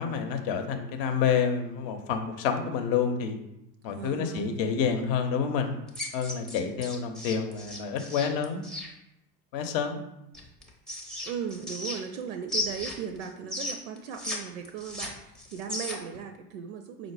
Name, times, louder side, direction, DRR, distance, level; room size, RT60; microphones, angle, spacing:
voice 1, 0.0-3.4 3.8-5.8 6.1-8.6 9.5-10.0, left 6 dB, 50° left, 6 dB, 0.7 m, -28 dB
voice 2, 3.9-4.6 11.2-17.1, right 8 dB, 60° right, 7 dB, 0.5 m, -37 dB
sound 1, 5.9-8.9 10.3-12.2 12.5-14.4 14.6-16.2, left 2 dB, ahead, 0.5 m, -35 dB
4.8 x 2.1 x 4.7 m, 0.87 s
figure-of-eight pair, 75°, 50 cm